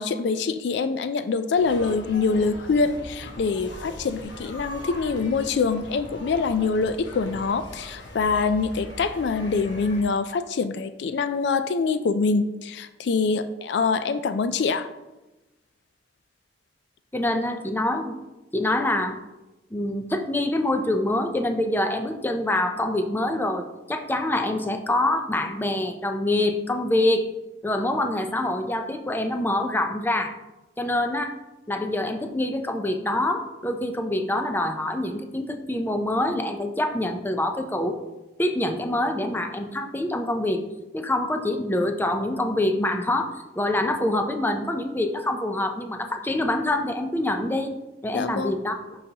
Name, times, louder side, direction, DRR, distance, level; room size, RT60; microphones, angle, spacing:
voice 1, 0.0-14.9 48.1-48.6, left 4 dB, 65° left, 12 dB, 0.4 m, -25 dB
sound 1, 1.6-10.0, left 1 dB, 85° left, 1.2 m, -40 dB
voice 2, 17.1-18.2 18.5-19.2 19.7-27.3 27.6-30.3 30.8-31.4 31.7-38.0 38.4-40.7 40.9-47.7 48.0-48.7, left 1 dB, 10° left, 5 dB, 0.5 m, -25 dB
11.0 x 4.0 x 2.8 m, 1.0 s
head